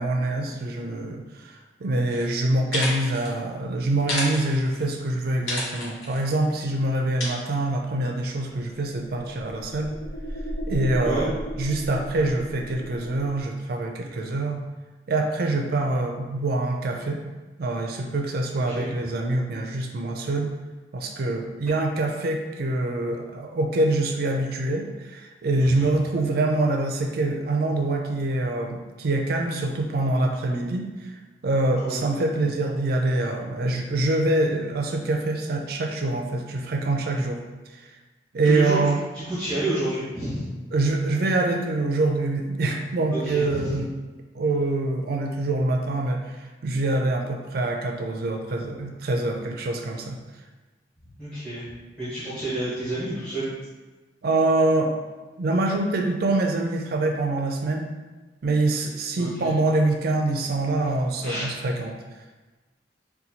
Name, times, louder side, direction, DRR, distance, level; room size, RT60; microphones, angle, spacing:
voice 1, 0.0-9.9 10.7-11.3 11.6-14.6 15.1-17.2 17.6-20.5 20.9-31.1 31.4-37.4 38.3-39.0 40.7-43.9 44.3-50.2 54.2-54.9 55.4-57.9 58.4-62.0, right 2 dB, 55° right, 3 dB, 0.4 m, -25 dB
sound 1, 2.1-2.3 2.6-3.3 4.0-4.8 5.5-6.2 7.2-7.3, left 1 dB, 80° left, 0.9 m, -30 dB
sound 2, 8.5-13.5, equal, 45° left, 0.4 m, -35 dB
voice 2, 25.6-25.9 31.8-32.0 38.4-40.5 43.1-43.8 51.2-51.6 52.0-53.5 59.2-59.5 60.8-60.9 61.2-61.4, right 1 dB, 5° left, -14 dB, 1.0 m, -29 dB
4.1 x 2.2 x 2.8 m, 1.2 s
head